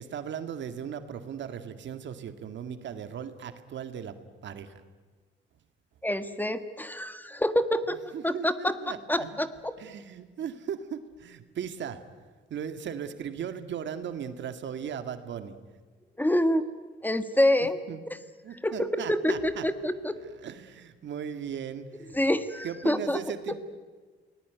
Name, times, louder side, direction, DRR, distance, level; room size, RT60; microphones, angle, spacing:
voice 1, 0.0-4.2 4.4-4.7 8.1-9.3 9.8-12.0 12.5-15.6 17.6-18.0 18.4-19.6 20.4-22.1 22.6-23.6, right 8 dB, 65° right, 9 dB, 2.0 m, -37 dB
voice 2, 6.0-8.0 8.2-9.7 16.2-16.7 17.0-17.8 18.5-20.1 22.1-23.2, left 1 dB, 10° left, 11 dB, 1.5 m, -27 dB
28.5 x 19.0 x 9.4 m, 1.5 s
cardioid pair, 90°, 20 cm